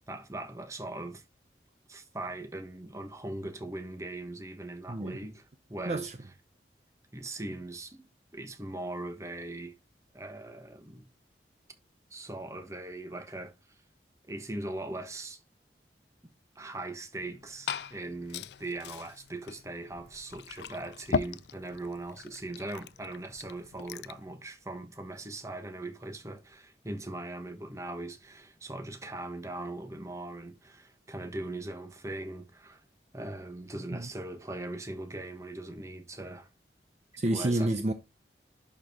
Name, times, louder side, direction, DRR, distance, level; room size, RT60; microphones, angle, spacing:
voice 1, 0.1-1.2 1.9-5.4 5.7-6.1 7.1-9.8 10.1-11.1 12.1-13.5 14.3-15.4 16.5-32.8 33.1-36.5 37.1-37.7, right 2 dB, 15° right, 1.0 m, -40 dB
voice 2, 4.9-5.2 5.9-6.2 33.9-34.1 37.2-37.9, right 1 dB, 40° right, 0.5 m, -29 dB
Glass / Fill (with liquid), 17.2-24.2, left 6 dB, 75° left, 0.4 m, -39 dB
11.0 x 4.4 x 3.5 m
head